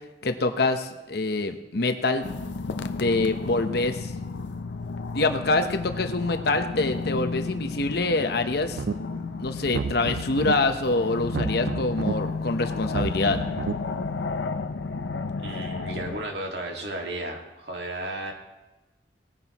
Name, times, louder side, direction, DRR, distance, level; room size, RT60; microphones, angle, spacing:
voice 1, 0.2-2.3 3.0-4.1 5.1-8.8 9.4-13.4, left 2 dB, 60° left, 7 dB, 0.9 m, -25 dB
sound 1, 2.2-16.2, left 3 dB, 85° left, 0.6 m, -32 dB
sound 2, 8.7-9.2 9.6-10.5 11.2-12.1 12.8-13.7, right 5 dB, 85° right, 0.4 m, -31 dB
voice 2, 15.4-18.3, right 1 dB, 70° right, 1 dB, 2.0 m, -34 dB
19.0 x 9.8 x 3.0 m, 1.0 s
head